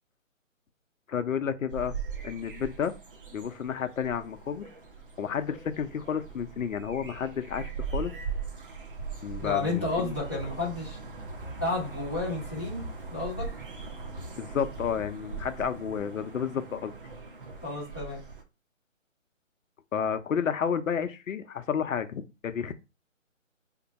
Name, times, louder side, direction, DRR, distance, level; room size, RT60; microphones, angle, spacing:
voice 1, 1.1-2.0 2.2-2.9 3.3-4.7 5.2-8.1 9.2-10.2 14.4-16.9 19.9-22.8, left 7 dB, 75° left, 0.6 m, -31 dB
sound 1, 1.7-18.4, right 5 dB, 45° right, 0.6 m, -40 dB
sound 2, 8.8-8.9 9.2-10.1 10.4-10.9 11.2-16.0, equal, 15° right, 0.9 m, -45 dB
voice 2, 9.4-11.0 11.6-12.8 13.1-13.5 17.6-18.2, left 3 dB, 10° left, 0.6 m, -31 dB
2.6 x 2.2 x 4.0 m
hypercardioid pair, 160°, 40 cm